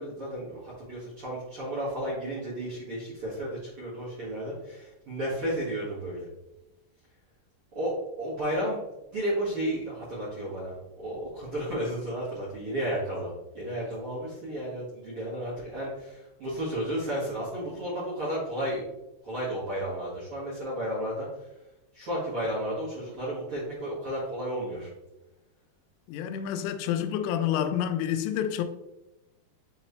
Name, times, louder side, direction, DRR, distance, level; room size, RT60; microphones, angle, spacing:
voice 1, 0.0-6.3 7.7-8.8 9.1-18.8 19.2-21.5 21.9-24.9, right 1 dB, 50° right, 1.7 m, -33 dB
voice 2, 26.1-28.6, left 10 dB, 90° left, 2.8 m, -28 dB
7.6 x 4.0 x 3.1 m
omnidirectional pair, 5.0 m